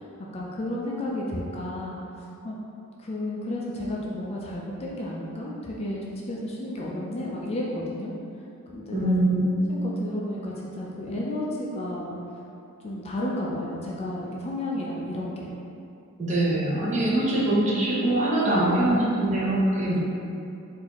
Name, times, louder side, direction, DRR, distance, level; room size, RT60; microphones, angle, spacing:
voice 1, 0.3-2.0 2.4-2.6 3.0-8.1 8.7-9.1 9.7-12.1 12.8-15.5 18.4-18.7 19.9-20.0, left 1 dB, 30° left, -4 dB, 0.3 m, -32 dB
voice 2, 8.9-9.4 16.2-20.0, right 1 dB, 35° right, -6 dB, 0.7 m, -23 dB
3.9 x 2.6 x 2.9 m, 2.7 s
head